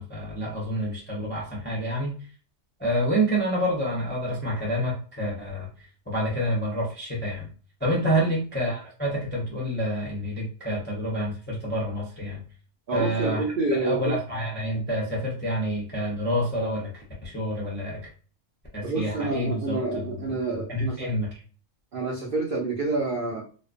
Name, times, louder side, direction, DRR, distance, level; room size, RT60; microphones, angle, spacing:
voice 1, 0.0-2.1 2.8-5.7 6.1-7.5 7.8-12.4 12.9-13.4 13.7-18.1 18.7-20.4 20.7-21.3, equal, 15° left, -4 dB, 0.3 m, -28 dB
voice 2, 12.9-14.1 18.8-21.1 21.9-23.4, right 3 dB, 70° right, -1 dB, 0.5 m, -28 dB
2.5 x 2.2 x 2.4 m, 0.39 s
omnidirectional pair, 1.5 m